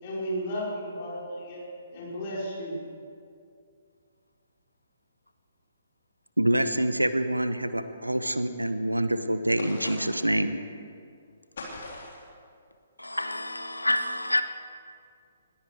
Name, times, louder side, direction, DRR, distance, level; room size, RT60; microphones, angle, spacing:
voice 1, 0.0-1.6 1.9-2.8, equal, 35° left, 4.8 m, -33 dB
voice 2, 6.4-10.5, right 1 dB, 85° right, 0.9 m, -26 dB
sound 1, 9.6-10.4 11.6-12.3, left 2 dB, 55° left, 3.6 m, -40 dB
voice 3, 13.0-14.4, left 1 dB, 80° left, 1.0 m, -28 dB
20.5 x 14.5 x 4.7 m
figure-of-eight pair, 130°, 0 cm